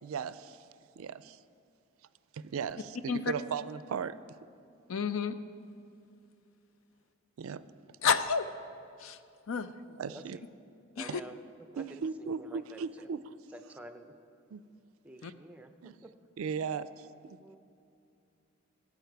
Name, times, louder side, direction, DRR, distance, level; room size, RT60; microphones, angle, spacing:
voice 1, 0.0-0.6 1.0-1.4 2.3-4.2 7.4-7.6 10.0-10.4 11.1-11.2 11.8-13.3 14.5-14.6 15.2-15.3 15.8-15.9 16.4-17.4, right 6 dB, 80° right, 15 dB, 0.4 m, -37 dB
voice 2, 4.9-5.4 8.0-8.5 9.0-9.2 9.5-9.7 11.0-11.2 15.2-15.3, left 6 dB, 75° left, 12 dB, 0.5 m, -30 dB
voice 3, 9.9-10.4 11.0-11.4 11.7-13.1 13.5-14.1 15.0-16.1 17.4-17.6, right 1 dB, 5° right, 6 dB, 0.5 m, -50 dB
16.5 x 8.5 x 4.6 m, 2.6 s
head